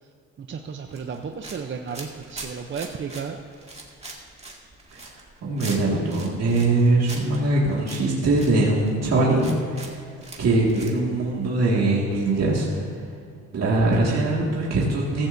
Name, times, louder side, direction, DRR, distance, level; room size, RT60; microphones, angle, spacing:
voice 1, 0.4-3.4, right 6 dB, 40° right, 4 dB, 0.7 m, -33 dB
sound 1, 0.9-10.9, right 2 dB, 20° right, 2.1 m, -41 dB
voice 2, 5.0-10.0 10.4-13.0 13.5-15.3, right 2 dB, 55° right, -4 dB, 2.1 m, -22 dB
15.5 x 15.0 x 2.7 m, 2.3 s
cardioid pair, 90°, 30 cm